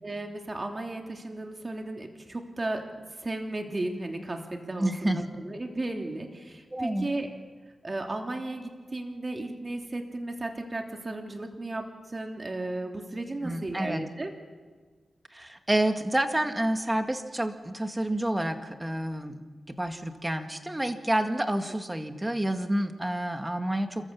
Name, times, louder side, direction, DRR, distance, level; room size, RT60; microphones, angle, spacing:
voice 1, 0.0-2.8 3.2-7.3 7.8-14.3, right 2 dB, 35° right, 3 dB, 3.0 m, -35 dB
voice 2, 4.8-5.3 6.7-7.1 13.4-14.0 15.3-24.1, right 1 dB, 15° right, 7 dB, 2.0 m, -29 dB
28.5 x 14.0 x 7.2 m, 1.5 s
cardioid pair, 65°, 0 cm